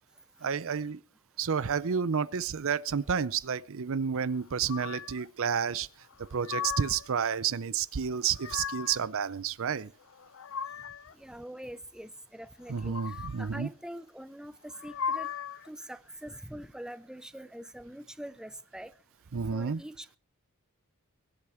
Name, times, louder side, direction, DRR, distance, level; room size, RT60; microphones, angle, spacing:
voice 1, 0.4-1.0 1.4-5.9 6.3-9.9 12.7-13.7 19.3-19.8, right 7 dB, 65° right, 0.6 m, -30 dB
sound 1, 4.7-5.3 6.1-7.1 8.1-9.1 10.0-11.1 12.7-13.5 14.7-15.7, left 7 dB, 65° left, 0.7 m, -38 dB
voice 2, 11.1-18.9 19.5-20.2, equal, 5° right, 0.6 m, -44 dB
22.5 x 8.5 x 4.4 m
head